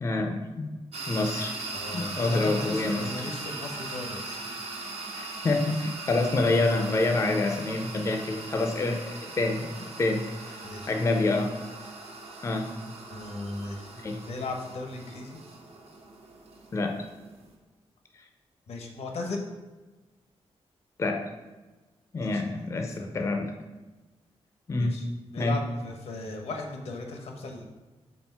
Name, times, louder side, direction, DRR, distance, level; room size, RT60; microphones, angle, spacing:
voice 1, 0.0-0.7 1.1-1.5 1.9-3.3 5.2-10.6 10.9-11.5 12.4-12.7 14.0-14.2 16.7-17.1 21.0-21.3 22.1-23.5 24.7-25.0 25.4-25.6, left 2 dB, 30° left, 4 dB, 0.5 m, -27 dB
sound 1, 0.9-17.5, right 3 dB, 75° right, 1.0 m, -40 dB
voice 2, 1.7-4.5 10.6-10.9 13.1-13.9 14.3-15.4 18.7-19.5 22.2-23.2 24.8-25.1 25.3-27.7, left 2 dB, 90° left, 2 dB, 1.0 m, -37 dB
4.4 x 4.0 x 5.6 m, 1.2 s
wide cardioid pair, 170°, 11 cm